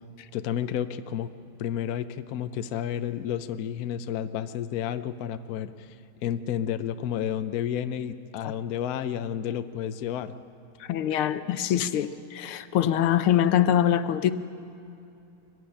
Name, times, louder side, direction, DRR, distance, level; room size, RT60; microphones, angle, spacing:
voice 1, 0.3-1.3 1.6-6.0 6.2-10.3, left 9 dB, 65° left, 0.9 m, -31 dB
voice 2, 10.8-14.3, left 10 dB, 80° left, 1.6 m, -24 dB
23.5 x 15.0 x 10.0 m
omnidirectional pair, 2.4 m